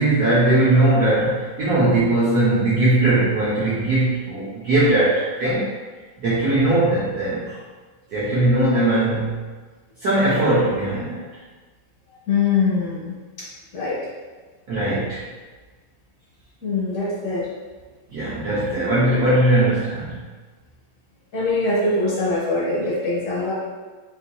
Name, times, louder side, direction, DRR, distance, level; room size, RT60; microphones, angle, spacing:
voice 1, 0.0-5.7 6.2-7.6 8.1-9.4 10.0-11.3 14.7-15.2 18.1-20.2, right 1 dB, 60° right, -9 dB, 1.0 m, -19 dB
voice 2, 12.3-13.1 13.7-14.0 16.6-17.5 21.3-23.5, left 3 dB, 60° left, -7 dB, 1.5 m, -22 dB
4.2 x 2.8 x 2.3 m, 1.4 s
omnidirectional pair, 2.3 m